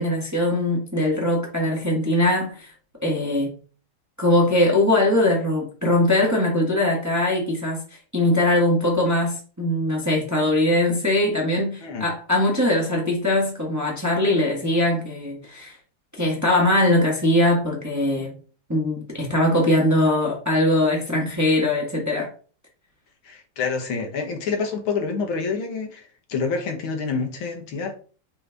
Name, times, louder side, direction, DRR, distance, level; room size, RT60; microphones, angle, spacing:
voice 1, 0.0-2.7 3.0-3.5 4.2-15.8 16.1-18.3 18.7-22.3, left 1 dB, 10° right, 1.2 m, -21 dB
voice 2, 23.3-26.0 26.3-27.9, left 5 dB, 75° left, 1.9 m, -27 dB
5.4 x 5.1 x 3.4 m
omnidirectional pair, 2.3 m